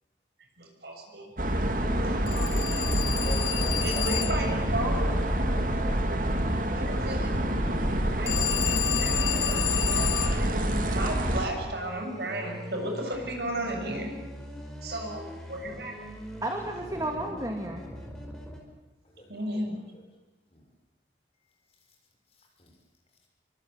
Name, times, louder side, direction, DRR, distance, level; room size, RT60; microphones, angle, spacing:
voice 1, 0.6-2.2 2.7-2.9 3.1-3.3 3.8-5.1 6.7-7.4 8.1-14.1 14.8-16.1 19.3-19.8, right 1 dB, 65° right, 2 dB, 7.2 m, -35 dB
sound 1, 1.4-11.5, right 1 dB, 45° right, 2.6 m, -27 dB
voice 2, 1.6-5.3 16.6-16.7 19.1-19.6 19.9-20.0 20.5-20.6 22.6-22.7, equal, 35° left, 0 dB, 6.6 m, -43 dB
Telephone, 2.3-4.6 8.3-10.5, left 12 dB, 75° left, 1.5 m, -30 dB
voice 3, 6.6-7.2 16.4-17.8, right 1 dB, 20° right, 2 dB, 2.5 m, -34 dB
sound 2, 6.7-18.6, equal, 5° left, 4.9 m, -43 dB
27.0 x 24.0 x 8.0 m, 1.0 s
head